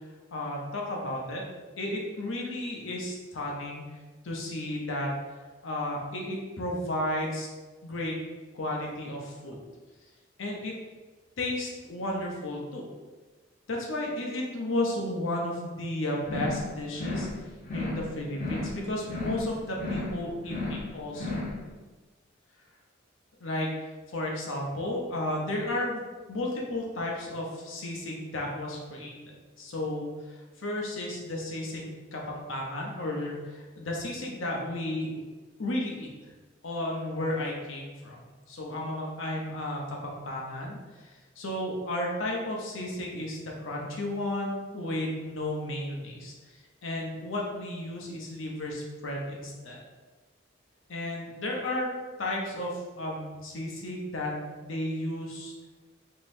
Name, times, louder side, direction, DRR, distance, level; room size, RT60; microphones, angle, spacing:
voice 1, 0.3-1.4 1.8-3.9 4.2-5.1 5.6-7.5 7.8-8.2 8.5-9.6 10.4-10.7 11.4-12.9 13.7-17.3 17.7-21.4 23.4-23.7 24.1-26.0 26.3-35.1 35.6-36.1 36.6-38.2 38.5-41.1 41.4-46.3 46.8-49.8 50.9-51.9 52.2-54.3 54.6-55.5, left 1 dB, 90° left, -1 dB, 0.8 m, -33 dB
sound 1, 16.2-16.7 16.9-17.4 17.6-18.1 18.3-18.8 19.0-19.5 19.7-20.2 20.4-20.9 21.1-21.6, left 2 dB, 40° left, 0.7 m, -33 dB
3.7 x 3.0 x 2.6 m, 1.3 s
head